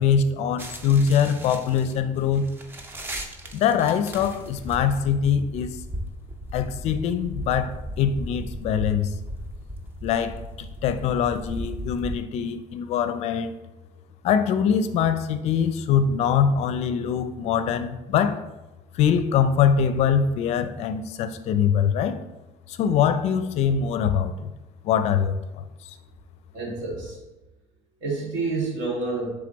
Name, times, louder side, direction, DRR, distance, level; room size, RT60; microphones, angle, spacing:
voice 1, 0.0-2.5 3.5-5.8 6.5-9.1 10.0-13.5 14.2-18.4 18.9-22.2 22.7-24.5 24.8-26.0, left 7 dB, 55° left, 11 dB, 0.4 m, -23 dB
sound 1, 0.6-12.2, equal, 15° right, 0.5 m, -36 dB
voice 2, 26.5-27.2 28.0-29.3, right 3 dB, 70° right, -4 dB, 2.1 m, -28 dB
6.9 x 3.4 x 3.9 m, 1.0 s
cardioid pair, 170°, 13 cm